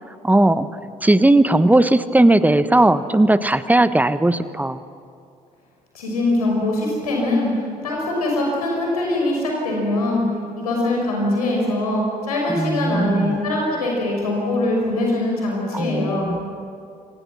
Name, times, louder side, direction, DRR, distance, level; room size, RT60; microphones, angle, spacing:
voice 1, 0.2-0.7 1.0-4.8 12.5-13.4 15.7-16.4, right 1 dB, 10° right, 14 dB, 1.1 m, -17 dB
voice 2, 5.9-7.5 7.8-10.2 10.6-16.3, left 1 dB, 75° left, -1 dB, 6.0 m, -22 dB
29.0 x 25.5 x 6.1 m, 2.4 s
figure-of-eight pair, 45°, 19 cm